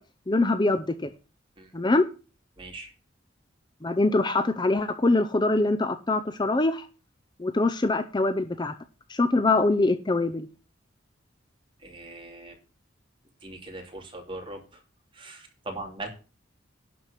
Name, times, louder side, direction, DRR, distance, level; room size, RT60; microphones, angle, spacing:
voice 1, 0.3-1.1 1.7-2.0 3.8-6.9 7.4-8.7 9.1-10.5, left 2 dB, 20° left, 0.6 m, -23 dB
voice 2, 2.6-2.9 11.8-12.6 13.4-14.8 15.1-16.1, right 2 dB, 25° right, 2.7 m, -40 dB
11.5 x 4.7 x 8.2 m
head